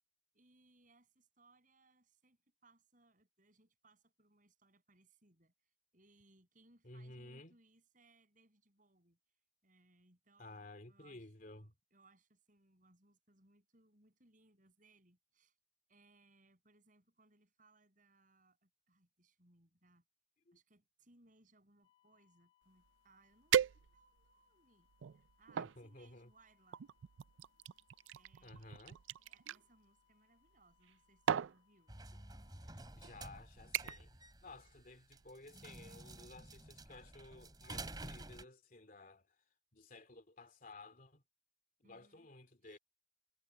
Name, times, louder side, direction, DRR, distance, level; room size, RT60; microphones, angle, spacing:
voice 1, 0.3-5.5 5.9-9.2 9.6-15.5 15.9-20.0 20.5-26.9 28.1-28.8 29.2-31.9 41.8-42.3 42.6-42.8, right 2 dB, 45° right, 7.3 m, -70 dB
voice 2, 6.8-7.6 10.4-11.7 20.5-20.6 25.6-26.3 28.4-29.0 32.7-39.3 39.7-41.2 41.8-42.8, left 2 dB, 45° left, 2.9 m, -55 dB
sound 1, 21.8-33.5, left 13 dB, 30° left, 3.1 m, -77 dB
sound 2, 22.9-23.0 23.5-24.3 24.9-25.8 26.7-29.6 30.7-30.9 31.3-31.6 32.5-32.6 33.0-33.3 33.7-34.1 34.5-34.8 35.2-35.3, right 9 dB, 90° right, 0.4 m, -37 dB
sound 3, 31.9-38.4, right 2 dB, 20° right, 2.9 m, -51 dB
head